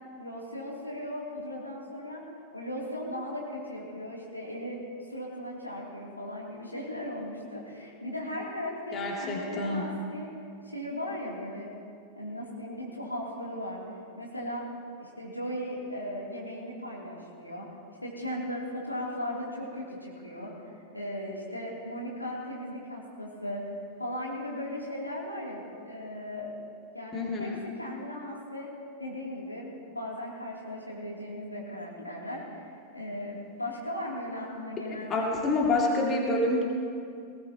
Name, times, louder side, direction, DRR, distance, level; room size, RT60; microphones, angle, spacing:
voice 1, 0.2-2.2 2.5-4.8 5.1-10.3 10.6-11.7 12.1-13.8 14.1-14.7 15.0-17.7 18.0-23.6 24.0-26.5 26.9-28.7 29.0-32.6 32.9-35.4, left 1 dB, 85° left, -4 dB, 3.0 m, -37 dB
voice 2, 8.9-9.8 27.1-27.6 35.1-36.6, left 2 dB, 25° left, -1 dB, 2.4 m, -27 dB
19.5 x 17.5 x 3.0 m, 2.3 s
figure-of-eight pair, 90°, 0 cm